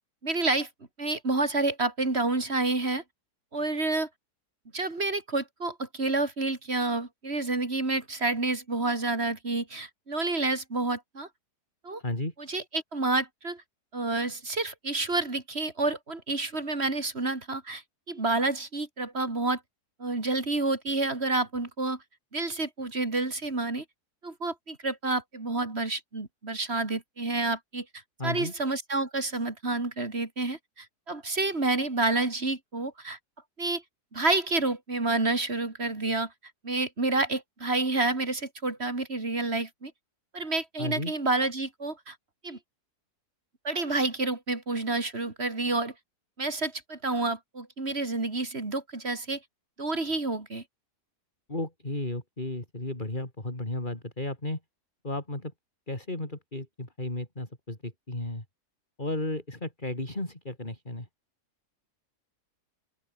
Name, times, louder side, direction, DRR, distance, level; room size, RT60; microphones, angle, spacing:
voice 1, 0.2-0.7 1.0-3.0 3.5-4.1 4.7-11.3 11.8-12.0 12.4-13.6 13.9-19.6 20.0-22.0 22.3-23.8 24.2-27.8 28.2-33.2 33.6-33.8 34.1-36.3 36.6-39.9 40.3-42.1 42.4-42.6 43.6-45.9 46.4-49.4 49.8-50.6, right 2 dB, 40° right, 3.5 m, -29 dB
voice 2, 12.0-12.3 28.2-28.5 40.8-41.1 51.5-54.6 55.0-55.5 55.9-58.4 59.0-61.1, left 2 dB, 30° left, 4.9 m, -34 dB
open air
omnidirectional pair, 1.7 m